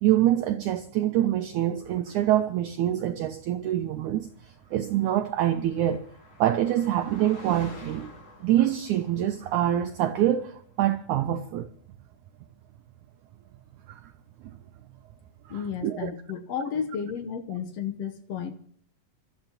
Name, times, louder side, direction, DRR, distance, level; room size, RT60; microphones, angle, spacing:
voice 1, 0.0-6.0 6.4-8.1 8.4-11.7 13.9-14.1 15.5-16.1, right 12 dB, 80° right, 1.7 m, -25 dB
Car passing by, 4.5-10.4, left 3 dB, 50° left, 5.4 m, -49 dB
voice 2, 15.5-18.5, left 7 dB, 85° left, 1.3 m, -32 dB
27.5 x 13.5 x 2.9 m
omnidirectional pair, 4.3 m